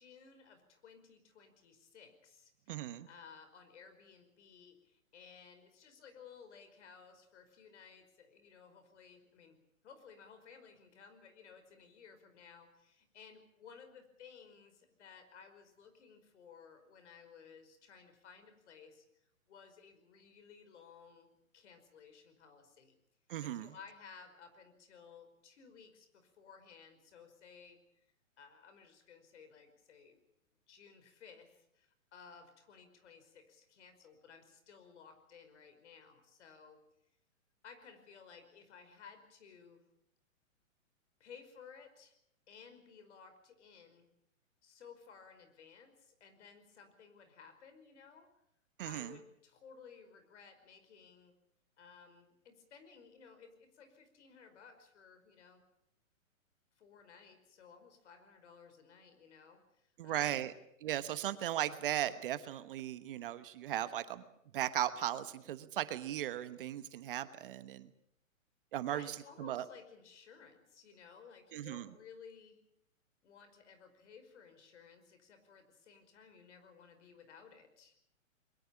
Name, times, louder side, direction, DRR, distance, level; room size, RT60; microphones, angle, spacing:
voice 1, 0.0-9.6 9.8-22.9 23.4-28.1 28.4-30.2 30.7-36.8 37.6-39.8 41.2-42.2 42.5-44.1 44.6-48.3 48.8-51.4 51.8-55.6 56.8-60.5 68.9-72.6 73.2-78.0, left 6 dB, 55° left, 9 dB, 5.3 m, -57 dB
voice 2, 2.7-3.1 23.3-23.7 48.8-49.1 60.0-60.5 60.8-64.2 64.5-67.9 68.7-69.6 71.5-71.9, right 12 dB, 40° right, 12 dB, 1.2 m, -37 dB
22.5 x 21.5 x 7.2 m, 0.75 s
hypercardioid pair, 145°, 41 cm